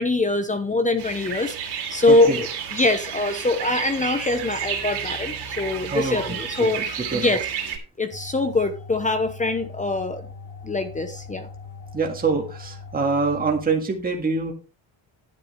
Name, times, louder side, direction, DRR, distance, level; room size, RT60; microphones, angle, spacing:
voice 1, 0.0-1.6 1.9-7.4 8.0-10.3 10.6-11.5, left 2 dB, 15° left, 9 dB, 0.8 m, -23 dB
sound 1, 1.0-7.8, right 7 dB, 55° right, 3.0 m, -31 dB
sound 2, 8.1-13.7, left 4 dB, 50° left, 3.2 m, -40 dB
voice 2, 11.9-14.5, right 4 dB, 20° right, 1 dB, 1.9 m, -24 dB
11.0 x 9.6 x 3.3 m, 0.32 s
cardioid pair, 160°, 49 cm